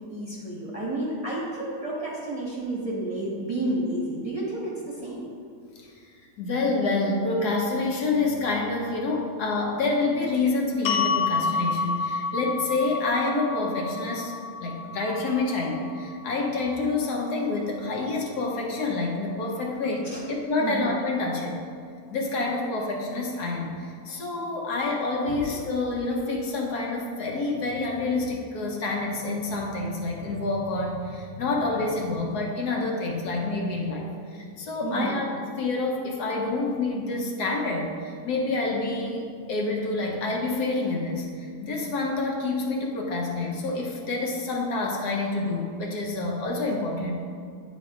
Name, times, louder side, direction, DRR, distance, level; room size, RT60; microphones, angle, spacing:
voice 1, 0.1-5.3 20.0-20.2 20.6-20.8 24.1-24.2 25.2-25.4 34.8-35.2, right 1 dB, 25° right, -6 dB, 0.9 m, -31 dB
voice 2, 6.4-14.3 14.6-21.6 22.1-47.2, left 3 dB, 70° left, -1 dB, 1.4 m, -28 dB
sound 1, 10.8-17.1, left 5 dB, 85° left, 0.5 m, -30 dB
9.4 x 3.6 x 3.7 m, 2.3 s
omnidirectional pair, 1.8 m